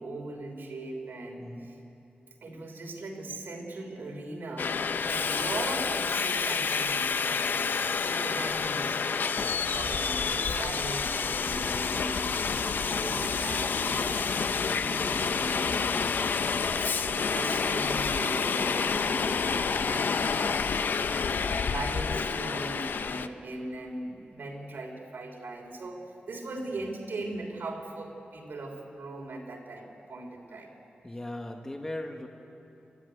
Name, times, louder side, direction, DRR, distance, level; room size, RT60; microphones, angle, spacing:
voice 1, 0.0-1.8 2.4-7.6 8.0-9.0 9.4-12.6 12.9-14.4 14.7-16.0 16.6-30.7, right 2 dB, 85° right, 1 dB, 3.4 m, -39 dB
Subway metro underground, 4.6-23.3, left 5 dB, 70° left, 0.6 m, -29 dB
voice 2, 31.0-32.3, left 1 dB, 15° left, 3 dB, 1.2 m, -38 dB
26.5 x 13.0 x 9.7 m, 2.9 s
wide cardioid pair, 170°, 3 cm